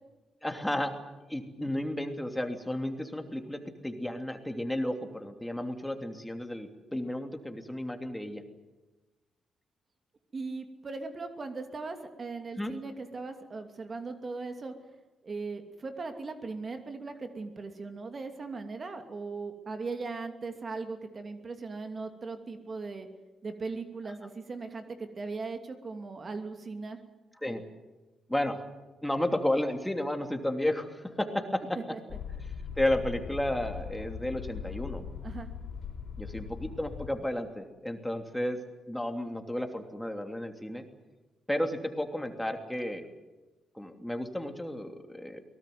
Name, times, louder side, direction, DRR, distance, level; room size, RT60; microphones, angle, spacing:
voice 1, 0.4-0.9 1.3-8.4 12.6-12.7 27.4-27.6 28.3-28.6 29.0-31.8 32.8-35.0 36.2-38.6 38.9-40.9 41.5-43.0 43.7-45.4, left 1 dB, 5° left, 5 dB, 3.0 m, -32 dB
voice 2, 10.3-14.7 15.2-23.1 23.4-27.0 31.9-32.0 35.2-35.5, right 4 dB, 45° right, 6 dB, 2.7 m, -38 dB
sound 1, 32.1-37.1, left 7 dB, 65° left, 4.2 m, -40 dB
23.5 x 18.0 x 9.5 m, 1.1 s
supercardioid pair, 60°, 0 cm